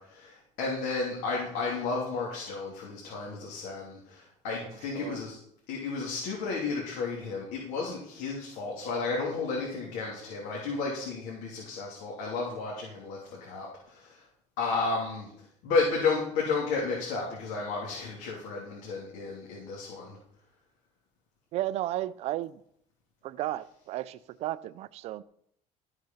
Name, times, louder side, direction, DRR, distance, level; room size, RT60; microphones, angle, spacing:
voice 1, 0.0-5.4 5.7-14.2 14.6-15.3 15.6-20.2, left 4 dB, 80° left, 3.1 m, -32 dB
voice 2, 21.5-22.6 23.2-25.2, right 14 dB, 45° right, 0.5 m, -33 dB
13.0 x 6.6 x 5.7 m
cardioid pair, 170°, 15 cm